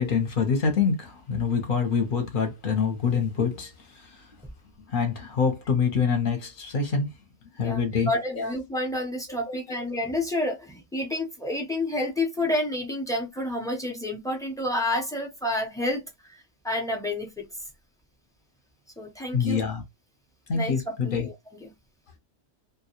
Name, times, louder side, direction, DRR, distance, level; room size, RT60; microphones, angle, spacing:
voice 1, 0.0-3.7 4.9-7.1 7.6-8.5 9.5-9.6 19.3-19.8 20.5-21.3, left 6 dB, 50° left, 0.8 m, -25 dB
voice 2, 7.6-16.0 16.3-16.4 16.6-17.5 19.0-19.6 20.5-21.7, left 1 dB, 5° left, 0.4 m, -29 dB
2.2 x 2.1 x 2.8 m
omnidirectional pair, 1.3 m